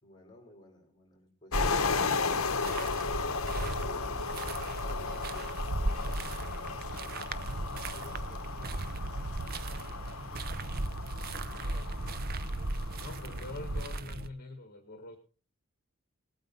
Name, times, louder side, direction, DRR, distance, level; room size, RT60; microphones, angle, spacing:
voice 1, 0.0-1.8 3.8-7.2 7.9-9.3, left 1 dB, 20° left, 3 dB, 4.7 m, -56 dB
sound 1, 1.5-14.0, left 4 dB, 70° left, 0.9 m, -35 dB
sound 2, 1.5-14.3, right 2 dB, 45° right, 0.7 m, -36 dB
voice 2, 11.6-11.9 13.0-15.2, left 2 dB, 45° left, 4 dB, 1.7 m, -45 dB
19.0 x 9.1 x 4.1 m, 0.36 s
head